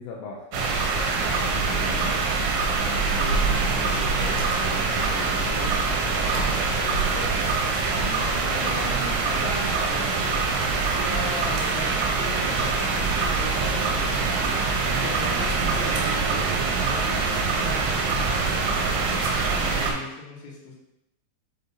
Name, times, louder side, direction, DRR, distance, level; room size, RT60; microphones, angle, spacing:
voice 1, 0.0-2.2 2.8-7.6, left 5 dB, 80° left, -2 dB, 2.5 m, -39 dB
sound 1, 0.5-19.9, right 4 dB, 85° right, 3.3 m, -24 dB
voice 2, 8.0-10.4 10.7-14.3 14.9-18.7 19.3-20.7, left 3 dB, 60° left, -4 dB, 2.0 m, -39 dB
7.6 x 4.5 x 2.7 m, 0.84 s
omnidirectional pair, 5.1 m